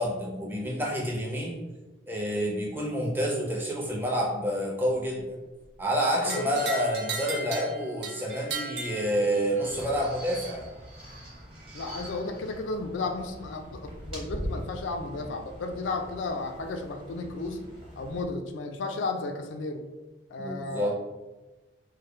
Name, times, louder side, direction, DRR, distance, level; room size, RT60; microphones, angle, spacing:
voice 1, 0.0-1.6 2.1-5.4 5.8-10.7 20.4-21.0, equal, 10° right, -2 dB, 0.4 m, -28 dB
voice 2, 6.2-6.6 11.7-17.7 18.0-19.9 20.3-21.0, left 3 dB, 85° left, 5 dB, 0.4 m, -33 dB
sound 1, 6.3-9.7, right 3 dB, 60° right, 0.6 m, -36 dB
sound 2, 9.6-18.2, equal, 30° right, 0.8 m, -42 dB
3.1 x 2.1 x 3.1 m, 1.1 s
head